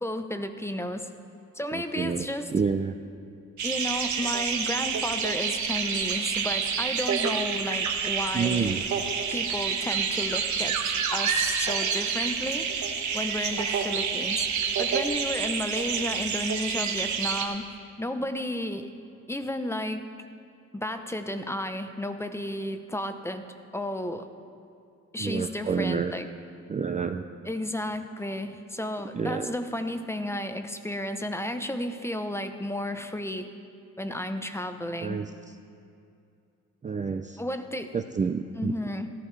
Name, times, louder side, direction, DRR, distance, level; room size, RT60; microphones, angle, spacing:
voice 1, 0.0-1.1 1.5-2.5 3.6-8.8 9.3-12.7 13.1-14.5 14.8-17.7 18.0-18.9 19.3-20.0 20.7-23.4 23.7-24.2 25.1-26.3 27.4-33.5 34.0-35.2 37.4-38.0 38.6-39.1, left 1 dB, 10° left, 8 dB, 0.7 m, -32 dB
voice 2, 1.7-2.3 2.5-2.9 8.3-8.8 25.2-26.1 26.7-27.2 29.1-29.5 35.0-35.3 36.8-37.4 37.9-38.7, right 5 dB, 25° right, 6 dB, 0.5 m, -28 dB
sound 1, 3.6-17.5, right 6 dB, 70° right, 1.2 m, -28 dB
14.5 x 13.5 x 3.3 m, 2.5 s
cardioid pair, 90°, 30 cm